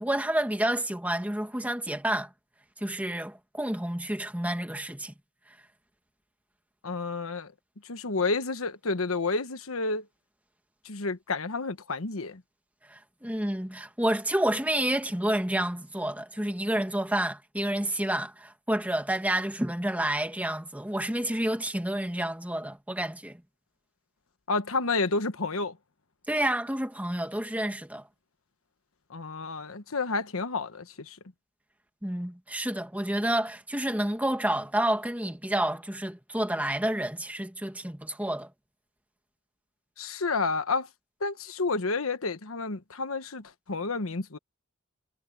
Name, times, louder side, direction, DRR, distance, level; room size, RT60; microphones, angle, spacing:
voice 1, 0.0-2.3 2.8-5.1 12.9-23.4 26.3-28.0 32.0-38.5, right 1 dB, 5° right, 2.0 m, -29 dB
voice 2, 6.8-7.5 7.8-10.1 10.8-12.4 24.5-25.8 29.1-31.2 40.0-40.9 41.2-44.4, left 3 dB, 80° left, 1.2 m, -30 dB
head